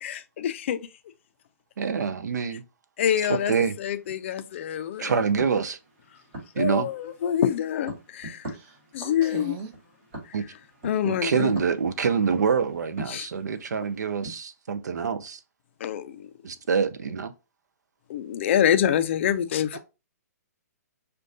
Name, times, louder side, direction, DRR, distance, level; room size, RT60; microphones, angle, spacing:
voice 1, 0.0-0.8 3.0-5.1 6.6-8.5 8.9-9.6 10.3-10.4 10.8-11.5 13.1-13.3 15.8-16.3 18.1-19.8, left 9 dB, 45° left, 0.4 m, -26 dB
voice 2, 1.8-2.6 3.3-3.8 5.0-5.8 6.6-6.9 10.3-10.5 11.0-15.4 16.4-17.3, right 6 dB, 85° right, 0.5 m, -26 dB
sound 1, 3.2-14.4, right 2 dB, 40° right, 2.4 m, -44 dB
voice 3, 8.5-9.7 19.7-19.8, right 5 dB, 25° right, 0.8 m, -40 dB
6.2 x 2.2 x 2.5 m
hypercardioid pair, 155°, 9 cm